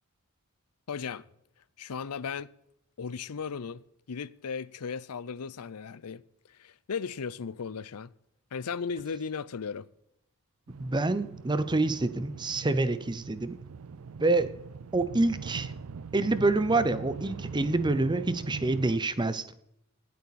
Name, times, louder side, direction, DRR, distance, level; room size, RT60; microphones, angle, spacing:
voice 1, 0.9-1.3 1.8-2.5 3.0-6.2 6.5-8.1 8.5-9.9, left 5 dB, 85° left, 0.6 m, -36 dB
sound 1, 10.7-19.0, right 5 dB, 70° right, 0.5 m, -42 dB
voice 2, 10.8-13.5 14.2-14.5 14.9-15.7 16.1-19.4, right 2 dB, 20° right, 0.7 m, -27 dB
18.5 x 8.5 x 4.2 m
head